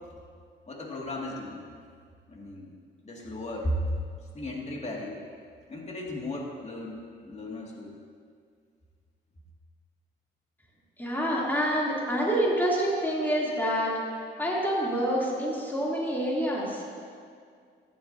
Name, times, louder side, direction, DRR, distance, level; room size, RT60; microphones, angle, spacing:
voice 1, 0.7-1.6 2.3-2.7 3.0-3.8 4.3-5.2 5.7-7.9, left 1 dB, 35° left, -2 dB, 2.3 m, -36 dB
voice 2, 11.0-13.9 14.4-16.8, equal, 10° left, -6 dB, 3.1 m, -27 dB
14.5 x 11.0 x 2.8 m, 2.1 s
cardioid pair, 90°, 20 cm